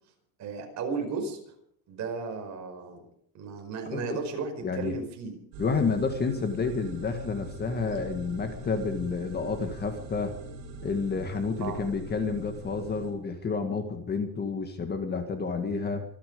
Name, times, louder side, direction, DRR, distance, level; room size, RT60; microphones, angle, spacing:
voice 1, 0.4-1.5 1.9-3.0 3.3-5.3 11.6-11.8, right 4 dB, 40° right, 3 dB, 5.1 m, -34 dB
voice 2, 4.6-5.0 5.6-10.4 10.8-16.0, left 4 dB, 25° left, 6 dB, 1.7 m, -30 dB
sound 1, 5.5-13.1, right 1 dB, 70° right, 5.9 m, -43 dB
sound 2, 5.7-13.1, right 2 dB, ahead, 3.8 m, -51 dB
25.5 x 10.0 x 5.4 m, 0.66 s
cardioid pair, 160°, 41 cm